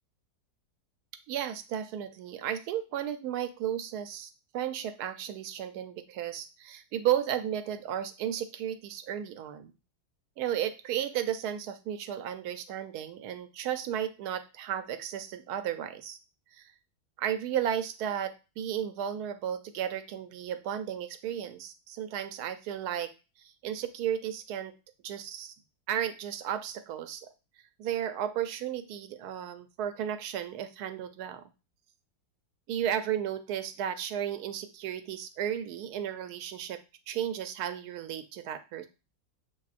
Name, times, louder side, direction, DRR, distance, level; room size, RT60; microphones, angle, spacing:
voice 1, 1.3-9.7 10.4-16.2 16.5-16.7 17.2-23.1 23.4-24.7 25.0-25.5 25.9-27.3 27.8-31.5 32.7-36.8 37.1-38.9, right 10 dB, 75° right, 10 dB, 1.1 m, -34 dB
7.2 x 2.6 x 2.4 m, 0.30 s
omnidirectional pair, 1.8 m